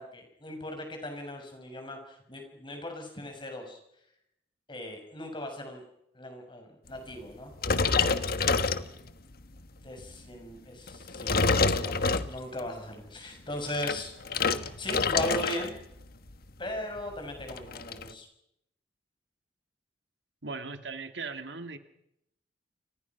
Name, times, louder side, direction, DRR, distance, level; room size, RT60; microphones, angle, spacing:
voice 1, 0.0-3.8 4.7-5.8 6.1-7.5 9.8-12.0 12.2-15.8 16.6-18.3, left 1 dB, 25° left, 4 dB, 6.3 m, -38 dB
sound 1, 7.6-9.3 9.9-10.1 10.9-12.7 13.5-15.8 16.0-16.3 16.7-16.8 17.0-18.1, left 4 dB, 55° left, 1.4 m, -27 dB
voice 2, 20.4-21.8, right 4 dB, 75° right, 8 dB, 2.3 m, -38 dB
30.0 x 26.0 x 6.0 m, 0.80 s
head